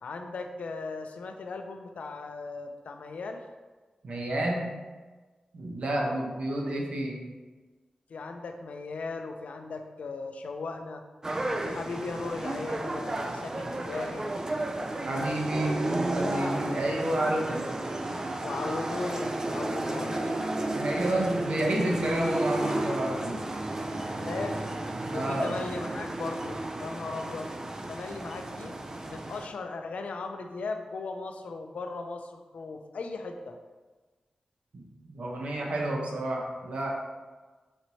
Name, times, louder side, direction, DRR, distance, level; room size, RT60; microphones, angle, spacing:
voice 1, 0.0-3.4 5.9-6.3 8.1-11.0 11.5-14.3 17.2-17.6 18.4-20.4 24.0-24.8 25.1-27.5 27.9-28.8 29.1-33.6, left 3 dB, 75° left, 6 dB, 0.4 m, -37 dB
voice 2, 4.0-4.7 5.5-7.2 15.0-17.7 20.7-23.4 25.0-25.5 34.7-34.8 35.1-36.9, right 1 dB, 65° right, -1 dB, 0.8 m, -30 dB
sound 1, 11.2-29.5, right 1 dB, 25° right, 0.3 m, -32 dB
5.1 x 3.0 x 2.7 m, 1.3 s
wide cardioid pair, 130°, 2 cm